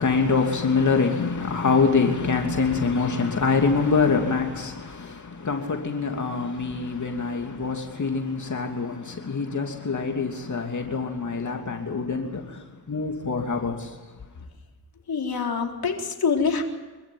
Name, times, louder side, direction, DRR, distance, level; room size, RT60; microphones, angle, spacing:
voice 1, 0.0-12.6 12.9-13.9, left 4 dB, 45° left, 2.8 m, -25 dB
voice 2, 15.1-16.6, left 5 dB, 60° left, 3.9 m, -25 dB
25.5 x 15.0 x 9.3 m
cardioid pair, 60°, 41 cm